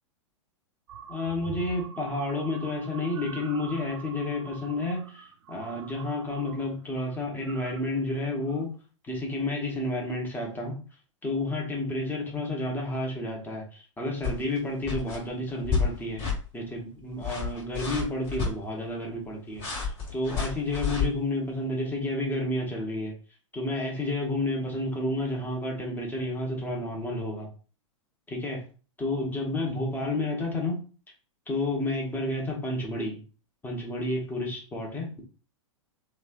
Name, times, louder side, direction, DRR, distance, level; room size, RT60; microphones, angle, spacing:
sound 1, 0.9-6.7 7.0-7.8 8.3-8.6, right 7 dB, 65° right, 0.4 m, -45 dB
voice 1, 1.1-8.7 9.0-10.8 11.2-16.2 16.5-23.1 23.5-27.5 28.3-28.6 29.0-30.8 31.5-33.2 33.6-35.2, left 2 dB, 10° left, -1 dB, 0.9 m, -31 dB
sound 2, 14.2-14.6 14.8-15.2 15.6-15.9 16.2-16.4 17.1-18.5 19.6-21.1, left 5 dB, 35° left, 1.5 m, -29 dB
3.1 x 2.4 x 2.4 m, 0.38 s
figure-of-eight pair, 105°, 16 cm